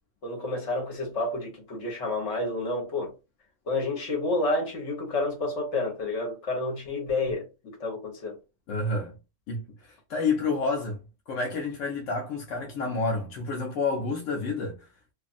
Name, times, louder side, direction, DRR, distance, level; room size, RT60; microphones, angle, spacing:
voice 1, 0.2-3.1 3.7-8.4, left 2 dB, 70° left, 1.4 m, -30 dB
voice 2, 8.7-9.1 9.5-11.0 11.3-14.9, left 3 dB, 85° left, 1.1 m, -29 dB
2.7 x 2.5 x 2.5 m
omnidirectional pair, 1.3 m